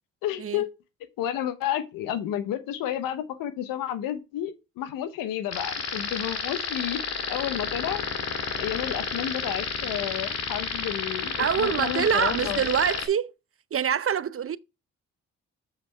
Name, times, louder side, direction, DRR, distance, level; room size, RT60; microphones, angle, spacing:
voice 1, 0.2-0.7 1.2-7.0 7.3-8.0 8.6-12.6, left 11 dB, 85° left, 1.0 m, -31 dB
sound 1, 5.5-13.1, left 5 dB, 50° left, 2.0 m, -31 dB
voice 2, 11.4-13.3 13.7-14.6, right 8 dB, 45° right, 0.6 m, -25 dB
7.5 x 5.7 x 3.4 m
supercardioid pair, 50°, 33 cm